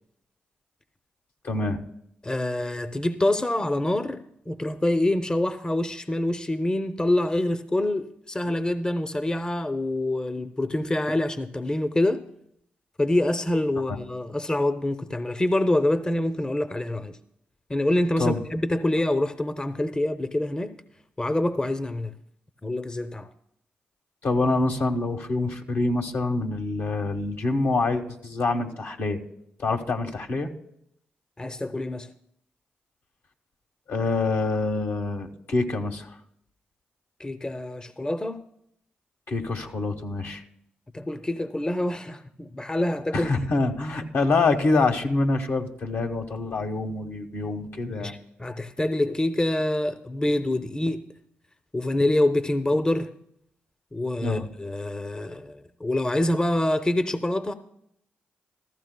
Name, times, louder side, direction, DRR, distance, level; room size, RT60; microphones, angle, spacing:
voice 1, 1.4-1.8 13.9-14.0 18.2-18.4 24.2-29.2 29.6-30.5 33.9-36.1 39.3-40.4 43.1-48.1 54.2-54.4, left 3 dB, 65° left, 1.1 m, -26 dB
voice 2, 2.2-4.2 4.5-12.2 13.0-17.2 17.7-20.8 21.2-22.1 22.6-23.3 31.4-32.1 37.2-38.4 40.9-43.3 47.8-51.0 51.7-53.1 53.9-57.5, left 1 dB, 20° left, 0.6 m, -26 dB
14.5 x 13.5 x 2.2 m
supercardioid pair, 45°, 4 cm